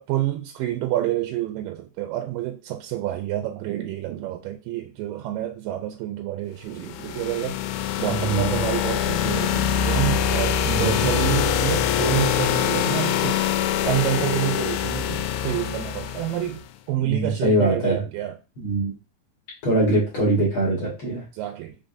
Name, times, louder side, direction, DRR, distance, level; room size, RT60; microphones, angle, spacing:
voice 1, 0.0-7.6 8.0-13.4 13.8-18.3 21.3-21.8, right 14 dB, 80° right, 2.0 m, -28 dB
sound 1, 6.8-16.6, left 9 dB, 85° left, 2.4 m, -24 dB
voice 2, 8.0-8.6 10.6-11.0 17.0-18.0 18.6-18.9 19.6-21.2, right 1 dB, 55° left, 1.6 m, -23 dB
5.5 x 3.7 x 2.5 m
omnidirectional pair, 4.2 m